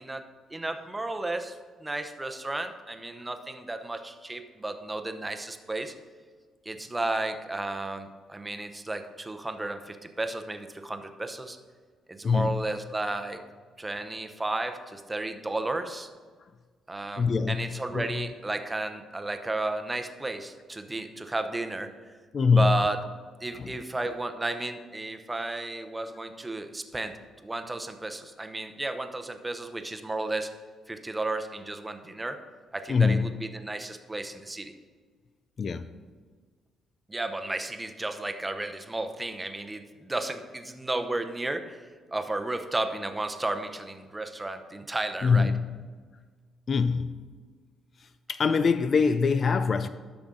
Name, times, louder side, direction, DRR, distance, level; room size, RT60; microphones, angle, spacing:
voice 1, 0.0-5.9 6.7-11.6 12.1-13.4 13.8-16.1 16.9-21.9 22.5-23.0 23.4-27.1 27.4-30.5 30.9-32.4 32.7-34.7 37.1-45.5, right 2 dB, 15° right, 0.8 m, -33 dB
voice 2, 12.2-12.6 17.2-17.7 17.9-18.1 22.3-22.8 23.6-23.7 32.9-33.3 35.6-35.9 45.2-45.8 46.7-47.3 48.3-49.9, left 5 dB, 45° left, 0.4 m, -23 dB
12.5 x 6.1 x 3.9 m
cardioid pair, 90°, 0 cm